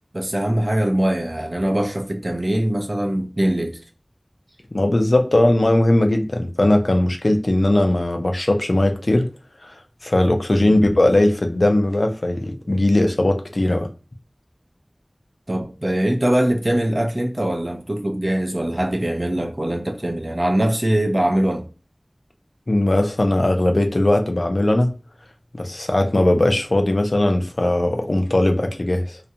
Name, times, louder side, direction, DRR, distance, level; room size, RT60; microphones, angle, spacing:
voice 1, 0.1-3.8 10.6-10.8 15.5-21.7, right 1 dB, 45° right, 0.5 m, -22 dB
voice 2, 4.7-9.3 9.6-9.8 10.0-13.9 22.7-24.9 25.5-29.2, left 1 dB, 75° left, 0.4 m, -19 dB
2.3 x 2.1 x 2.7 m
wide cardioid pair, 40°, 0 cm